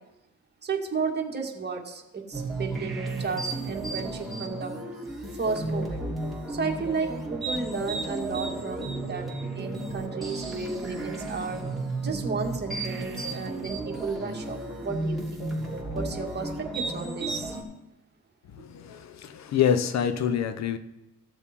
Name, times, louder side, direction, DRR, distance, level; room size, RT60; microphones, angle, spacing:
voice 1, 0.6-4.7 5.4-6.1 6.5-9.2 9.5-11.6 12.0-15.5 15.9-17.6, right 4 dB, 35° right, 2.0 m, -33 dB
sound 1, 2.3-17.6, right 2 dB, ahead, 3.2 m, -33 dB
voice 2, 18.5-20.8, left 8 dB, 60° left, 0.8 m, -26 dB
15.5 x 7.0 x 4.5 m
cardioid pair, 90°, 30 cm